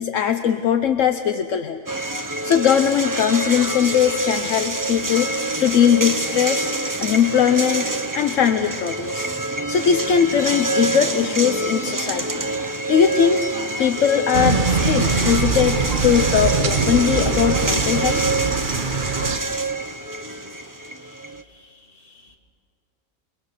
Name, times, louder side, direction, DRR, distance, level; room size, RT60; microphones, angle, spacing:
voice 1, 0.0-1.8 2.4-6.7 7.0-7.9 8.1-9.3 9.7-12.4 12.9-13.4 13.8-18.2, left 8 dB, 75° left, 8 dB, 1.2 m, -20 dB
sound 1, 1.9-21.4, right 2 dB, 15° right, 0.9 m, -26 dB
sound 2, 14.3-19.4, right 5 dB, 40° right, 1.2 m, -22 dB
voice 2, 20.5-22.4, left 2 dB, 45° left, 0 dB, 3.0 m, -53 dB
29.0 x 23.0 x 6.8 m, 2.1 s
omnidirectional pair, 1.4 m